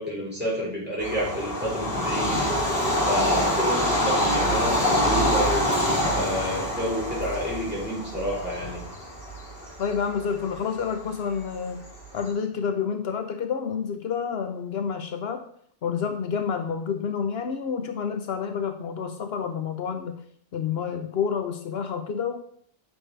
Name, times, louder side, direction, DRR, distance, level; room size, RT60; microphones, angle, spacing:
voice 1, 0.0-2.5 3.1-8.9, equal, 10° right, -6 dB, 3.8 m, -29 dB
Bird vocalization bird call bird song / Train, 1.0-12.2, equal, 60° left, 2.9 m, -26 dB
voice 2, 9.8-11.8 12.1-15.5 15.8-20.2 20.5-22.4, left 6 dB, 75° left, 6 dB, 1.0 m, -29 dB
9.2 x 6.2 x 3.3 m, 0.63 s
omnidirectional pair, 1.1 m